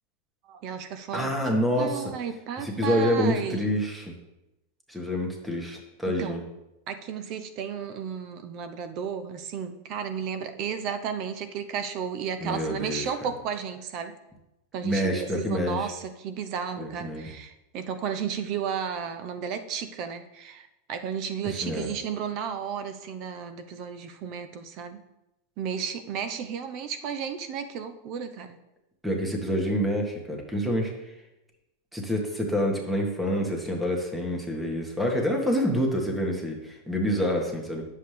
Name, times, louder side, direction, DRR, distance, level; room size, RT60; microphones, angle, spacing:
voice 1, 0.4-3.7 6.1-6.4 6.9-14.2 14.7-25.0 25.6-28.6 35.1-35.2, right 7 dB, 50° right, 10 dB, 0.8 m, -33 dB
voice 2, 1.1-2.1 2.6-4.1 4.9-6.4 12.4-13.1 14.8-15.9 16.8-17.3 21.4-21.9 29.0-31.1 31.9-37.8, equal, 5° right, 1 dB, 1.5 m, -27 dB
10.5 x 7.4 x 3.3 m, 0.95 s
supercardioid pair, 125°, 0 cm